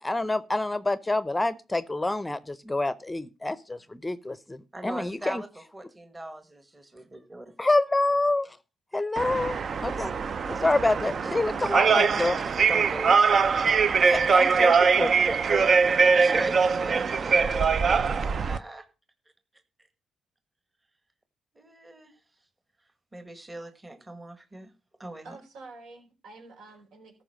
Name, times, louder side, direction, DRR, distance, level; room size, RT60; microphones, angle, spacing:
voice 1, 0.0-5.4 7.6-8.5 8.9-10.1 10.5-12.5 14.0-15.1, left 2 dB, 10° left, 17 dB, 0.7 m, -27 dB
voice 2, 4.7-7.5 8.9-9.1 11.4-13.4 13.6-14.1 14.7-15.7 16.0-18.8 21.5-22.1 23.1-24.7 25.0-25.4, right 1 dB, 15° right, 9 dB, 1.6 m, -39 dB
sound 1, 9.2-18.6, right 5 dB, 50° right, 0.6 m, -22 dB
voice 3, 25.2-27.2, right 3 dB, 75° right, 3 dB, 4.5 m, -48 dB
13.5 x 5.5 x 6.4 m, 0.31 s
cardioid pair, 90°, 0 cm